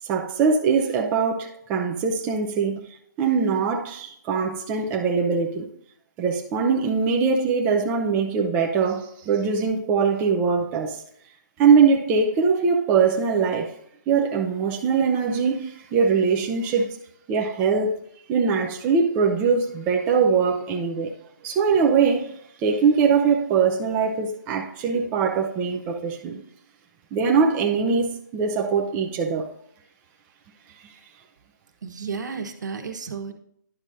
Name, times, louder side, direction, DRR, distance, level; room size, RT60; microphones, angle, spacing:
voice 1, 0.0-2.9 3.2-5.7 6.2-11.0 11.6-13.7 14.1-16.9 17.3-18.0 18.3-21.1 21.4-22.3 22.6-26.4 27.1-29.5, right 5 dB, 15° right, 0.5 m, -22 dB
voice 2, 31.8-33.3, right 5 dB, 65° right, 1.3 m, -32 dB
10.5 x 6.1 x 2.6 m
hypercardioid pair, 150°, 10 cm